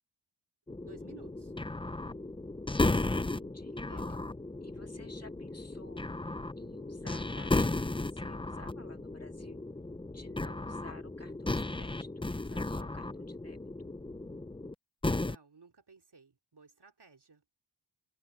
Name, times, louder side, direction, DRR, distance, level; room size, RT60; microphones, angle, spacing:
sound 1, 0.7-14.7 15.0-15.4, left 2 dB, 10° left, 0.6 m, -35 dB
voice 1, 0.7-1.5 3.7-4.2 15.2-17.4, right 4 dB, 65° right, 3.1 m, -56 dB
voice 2, 3.3-3.8 4.6-6.1 6.6-9.7 10.1-13.6, left 2 dB, 35° left, 2.0 m, -53 dB
wide cardioid pair, 80°, 44 cm